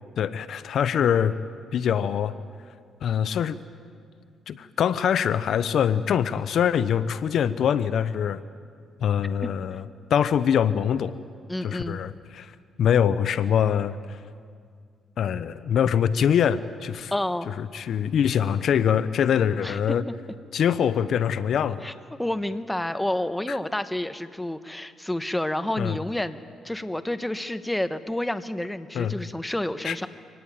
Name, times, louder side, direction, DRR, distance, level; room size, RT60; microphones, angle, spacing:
voice 1, 0.2-1.3 1.7-2.3 3.0-3.6 4.5-8.4 9.0-9.8 10.1-11.1 11.6-12.5 12.8-14.2 15.2-17.1 17.5-20.0 20.5-21.9 23.5-23.6 25.8-26.0 28.9-29.1 29.8-30.0, left 8 dB, 65° left, 14 dB, 0.7 m, -24 dB
voice 2, 11.5-12.0 17.1-17.5 19.6-20.0 21.8-21.9 22.2-30.1, left 1 dB, 10° left, 11 dB, 1.1 m, -29 dB
25.0 x 18.5 x 9.4 m, 2.1 s
cardioid pair, 90°, 0 cm